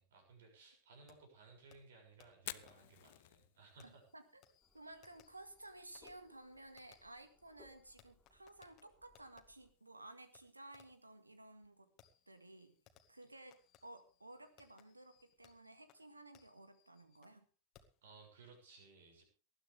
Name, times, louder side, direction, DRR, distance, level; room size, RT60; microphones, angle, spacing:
voice 1, 0.0-4.0 4.9-5.0 18.0-19.2, right 4 dB, 60° right, 3 dB, 6.7 m, -61 dB
Fireworks, 1.1-1.2 1.7-1.8 2.2-2.3 2.7-2.8 3.8-9.4 10.3-10.4 10.7-11.1 12.0-17.4 17.7-18.0, left 10 dB, 35° left, 2.0 m, -69 dB
Fire, 2.3-16.2, left 17 dB, 50° left, 0.8 m, -60 dB
voice 2, 3.8-4.4 4.7-11.9 12.3-12.8 13.1-17.5, right 1 dB, 85° right, 10 dB, 1.9 m, -56 dB
sound 1, 4.6-9.7, left 2 dB, 5° left, 4.0 m, -70 dB
19.5 x 13.0 x 3.5 m, 0.35 s
figure-of-eight pair, 90°, 0 cm